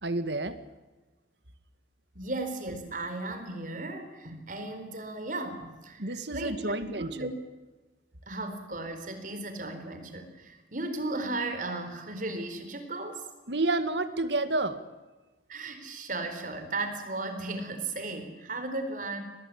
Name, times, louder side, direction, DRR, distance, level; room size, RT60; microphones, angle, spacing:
voice 1, 0.0-0.6 6.0-7.3 13.5-14.8, right 2 dB, 70° right, 11 dB, 2.1 m, -30 dB
voice 2, 2.1-7.3 8.3-13.2 15.5-19.2, right 2 dB, 45° right, 7 dB, 4.5 m, -36 dB
24.5 x 19.5 x 9.9 m, 1.2 s
head